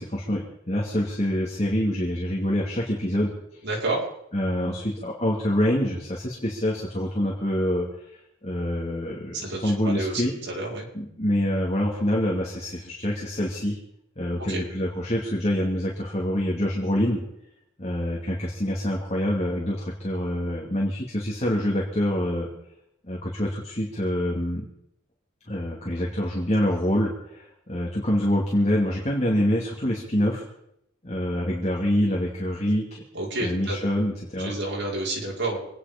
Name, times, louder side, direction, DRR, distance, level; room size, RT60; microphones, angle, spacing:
voice 1, 0.0-3.3 4.3-7.9 8.4-10.3 10.9-13.8 14.2-17.2 17.8-22.5 23.1-24.6 25.5-30.4 31.0-32.8 33.4-34.5, equal, 35° left, -3 dB, 2.7 m, -26 dB
voice 2, 3.6-4.0 9.3-10.9 14.5-14.6 33.1-33.8 34.4-35.6, right 2 dB, 60° right, -3 dB, 5.4 m, -29 dB
25.5 x 9.9 x 5.3 m, 0.77 s
head